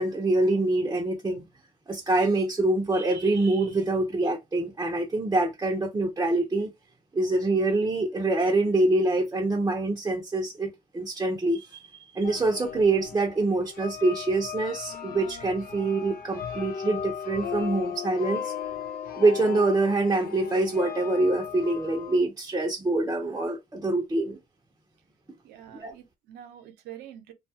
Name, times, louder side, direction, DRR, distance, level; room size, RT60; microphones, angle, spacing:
voice 1, 0.0-1.4 1.9-6.7 7.1-18.5 19.2-24.4 25.7-26.0, right 2 dB, 20° right, 0.7 m, -25 dB
sound 1, 12.2-22.2, left 7 dB, 60° left, 0.5 m, -36 dB
voice 2, 25.4-27.3, right 11 dB, 80° right, 0.7 m, -46 dB
2.7 x 2.3 x 2.7 m
cardioid pair, 110°, 17 cm